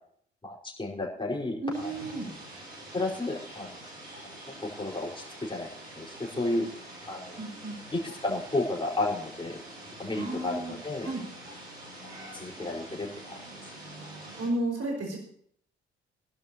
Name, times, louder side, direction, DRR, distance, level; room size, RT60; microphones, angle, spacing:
voice 1, 0.4-1.9 2.9-3.7 4.8-5.7 5.9-6.7 7.1-7.4 7.9-9.6 10.0-11.1 12.3-13.4, left 2 dB, 15° left, -3 dB, 4.7 m, -32 dB
voice 2, 1.6-2.3 7.3-7.8 10.1-10.7 11.0-11.2 14.4-15.2, right 2 dB, 55° right, 0 dB, 5.4 m, -32 dB
sound 1, 1.7-14.5, right 1 dB, 85° right, 4.6 m, -45 dB
23.5 x 12.0 x 2.9 m, 0.64 s
figure-of-eight pair, 40°, 30 cm